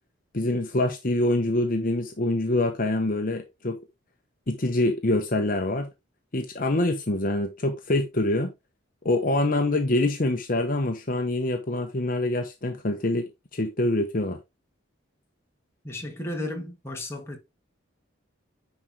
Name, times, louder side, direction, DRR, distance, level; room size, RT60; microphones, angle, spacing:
voice 1, 0.3-3.8 4.5-5.9 6.3-8.5 9.0-14.4, left 1 dB, 45° left, 1.0 m, -25 dB
voice 2, 15.8-17.4, left 1 dB, 15° left, 1.9 m, -34 dB
10.0 x 4.6 x 3.6 m
head